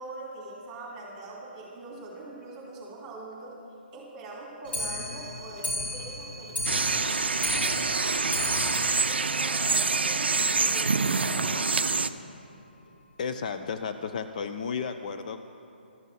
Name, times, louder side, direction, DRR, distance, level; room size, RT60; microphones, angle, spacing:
voice 1, 0.0-3.6 3.9-8.6 9.0-11.7, right 2 dB, 15° right, -3 dB, 2.8 m, -43 dB
Clock, 4.6-10.1 10.5-10.6 10.8-10.9 11.3-11.4 11.6-11.7 12.4-12.5 13.2-13.3 14.0-14.1, left 1 dB, 75° left, 1.8 m, -35 dB
sound 1, 6.7-12.1, right 4 dB, 75° right, 0.4 m, -26 dB
voice 2, 13.2-15.4, left 6 dB, 45° left, 8 dB, 0.4 m, -33 dB
12.5 x 5.4 x 7.5 m, 2.7 s
figure-of-eight pair, 140°, 6 cm